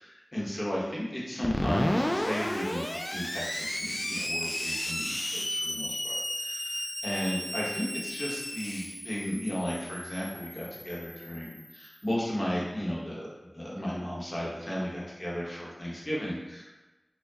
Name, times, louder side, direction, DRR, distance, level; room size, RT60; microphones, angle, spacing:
voice 1, 0.3-2.8 3.1-6.1 6.4-13.3 13.5-16.8, equal, 40° left, -6 dB, 1.0 m, -34 dB
Screech, 1.4-11.9, left 1 dB, 20° left, 0.3 m, -33 dB
4.4 x 2.2 x 2.8 m, 1.1 s
wide cardioid pair, 60°, 0 cm